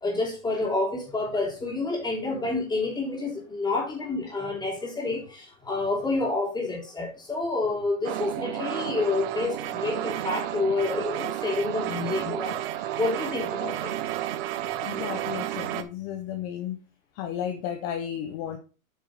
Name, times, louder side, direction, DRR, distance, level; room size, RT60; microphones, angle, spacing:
voice 1, 0.0-12.6 13.0-13.9, left 3 dB, 10° left, 3.4 m, -29 dB
sound 1, 8.0-15.8, right 12 dB, 40° right, 1.0 m, -31 dB
voice 2, 14.8-16.8 17.1-18.6, left 9 dB, 35° left, 1.1 m, -33 dB
9.1 x 4.8 x 5.0 m
hypercardioid pair, 130°, 42 cm